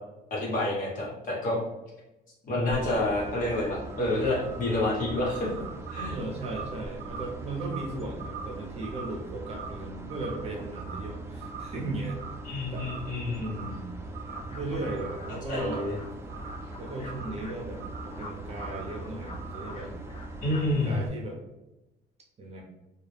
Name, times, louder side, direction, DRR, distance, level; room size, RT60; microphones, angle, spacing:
voice 1, 0.3-1.6 2.4-5.5 5.9-6.1 12.4-13.5 15.5-15.9 20.4-21.0, left 2 dB, 50° left, -5 dB, 1.2 m, -28 dB
sound 1, 2.7-21.1, right 2 dB, 15° right, 0.4 m, -41 dB
sound 2, 2.8-10.5 10.7-11.2 11.4-12.5 12.7-13.1 13.4-13.9 14.1-15.3 15.5-17.5 17.8-18.2 18.6-19.0 19.4-19.9, right 6 dB, 70° right, 0.5 m, -44 dB
voice 2, 6.1-12.2 12.7-12.9 13.3-13.9 14.5-16.0 16.8-19.9 20.4-21.4 22.4-22.6, right 2 dB, 40° right, 0 dB, 0.7 m, -37 dB
sound 3, 14.3-20.9, left 2 dB, 35° left, 0.6 m, -47 dB
2.4 x 2.2 x 3.3 m, 0.99 s
cardioid pair, 110°, 17 cm